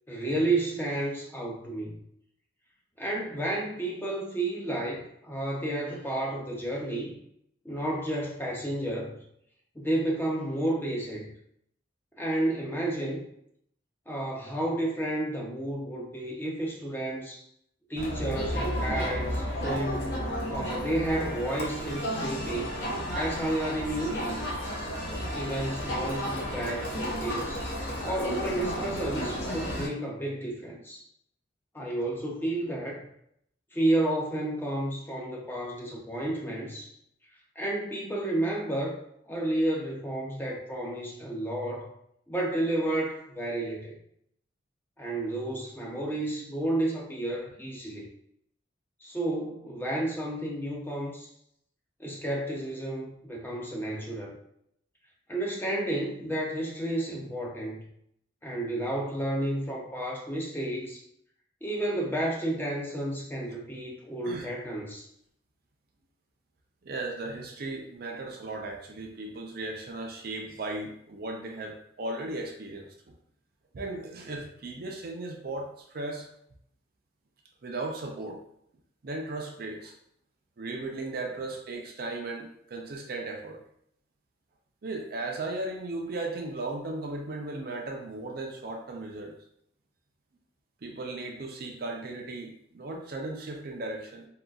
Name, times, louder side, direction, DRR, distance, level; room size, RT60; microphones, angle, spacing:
voice 1, 0.1-2.0 3.0-7.2 7.6-9.1 9.8-11.3 12.2-13.3 14.1-17.4 17.9-20.2 20.5-22.7 23.1-24.4 25.3-27.6 28.0-31.0 31.7-33.1 33.7-36.9 37.6-39.0 39.3-41.9 42.3-43.9 45.0-48.1 49.0-51.3 52.0-54.4 55.3-57.8 58.4-61.0 61.6-65.0, right 1 dB, 10° left, -2 dB, 0.5 m, -31 dB
Crowd, 18.0-29.9, equal, 60° left, 0.7 m, -32 dB
voice 2, 66.8-73.1 73.7-76.3 77.6-78.4 79.0-80.0 80.6-83.6 84.8-89.3 90.8-94.3, right 2 dB, 50° right, 2 dB, 0.5 m, -36 dB
3.7 x 2.3 x 2.3 m, 0.72 s
head